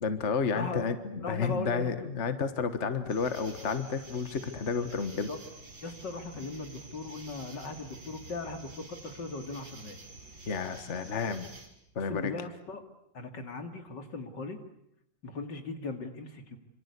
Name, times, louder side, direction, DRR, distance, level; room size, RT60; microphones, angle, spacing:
voice 1, 0.0-5.3 10.5-11.5 12.0-12.3, left 5 dB, 40° left, 10 dB, 1.7 m, -31 dB
voice 2, 1.2-1.9 5.1-5.4 5.8-10.0 12.0-12.8 13.1-14.6 15.2-16.6, left 3 dB, 70° left, 7 dB, 3.2 m, -38 dB
sound 1, 3.1-11.7, right 2 dB, 85° right, 4.8 m, -49 dB
27.0 x 26.5 x 8.4 m, 0.75 s
omnidirectional pair, 2.0 m